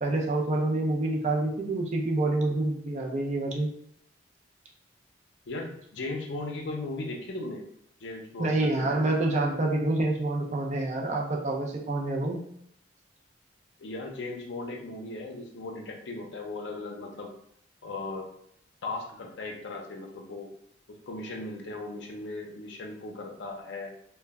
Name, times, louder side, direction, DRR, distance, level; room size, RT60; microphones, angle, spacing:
voice 1, 0.0-3.7 8.4-12.4, right 2 dB, 40° right, 0 dB, 0.4 m, -27 dB
voice 2, 5.5-7.6 8.0-9.0 13.8-17.3 17.8-18.3 18.8-20.5 21.1-23.9, left 2 dB, 70° left, 1 dB, 0.5 m, -37 dB
2.2 x 2.1 x 3.4 m, 0.69 s
head